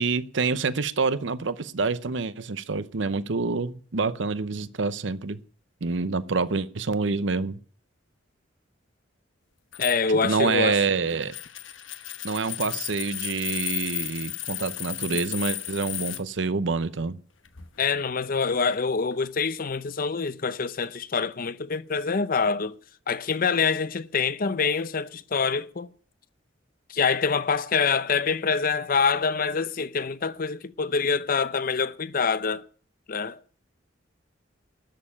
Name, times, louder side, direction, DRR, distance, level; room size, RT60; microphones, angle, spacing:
voice 1, 0.0-5.4 5.8-7.6 10.2-11.3 12.2-17.2, right 4 dB, 70° right, 0.8 m, -27 dB
sound 1, 9.7-16.2 17.5-18.1 19.1-19.3, left 14 dB, 85° left, 1.1 m, -34 dB
voice 2, 9.8-10.8 17.8-22.8 23.1-25.9 26.9-32.7 33.1-33.4, left 5 dB, 50° left, 0.6 m, -25 dB
13.0 x 6.6 x 9.9 m
head